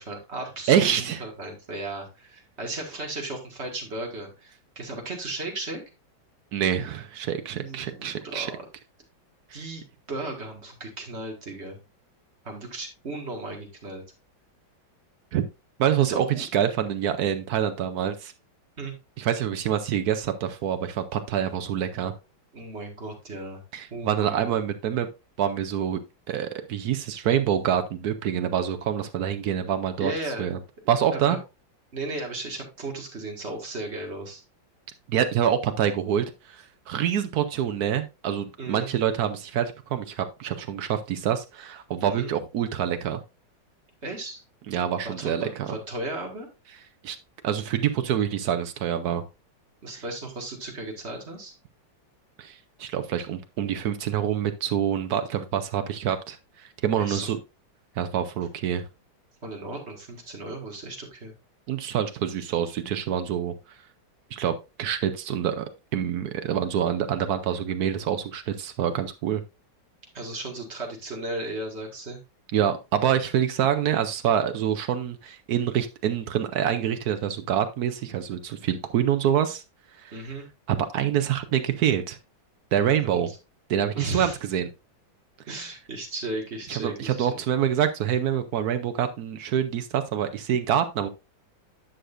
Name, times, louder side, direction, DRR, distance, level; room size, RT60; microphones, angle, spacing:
voice 1, 0.0-5.8 7.5-8.6 9.5-9.8 10.1-11.8 12.4-14.0 16.0-16.4 18.8-18.9 22.5-23.6 23.9-24.4 30.0-30.5 31.1-31.4 31.9-34.4 38.6-38.9 42.2-42.3 44.0-44.4 45.0-46.5 49.8-51.5 57.0-57.3 59.4-61.3 70.1-72.2 80.1-80.4 83.1-83.2 84.0-84.4 85.5-87.4, right 2 dB, 35° right, 2 dB, 2.0 m, -35 dB
voice 2, 0.7-1.2 6.5-8.5 9.5-9.6 15.3-15.5 15.8-18.3 19.2-22.1 23.7-25.1 25.4-26.0 26.3-30.1 30.4-30.6 30.9-31.4 35.1-43.2 44.7-45.8 47.0-47.2 47.4-49.2 49.9-50.0 52.4-57.4 58.0-58.8 61.7-63.5 64.3-65.7 65.9-69.4 72.5-79.6 80.0-80.2 80.7-82.2 82.7-83.3 83.7-84.7 86.7-91.1, right 9 dB, 65° right, 9 dB, 1.0 m, -26 dB
10.0 x 6.4 x 2.5 m, 0.26 s
omnidirectional pair, 2.1 m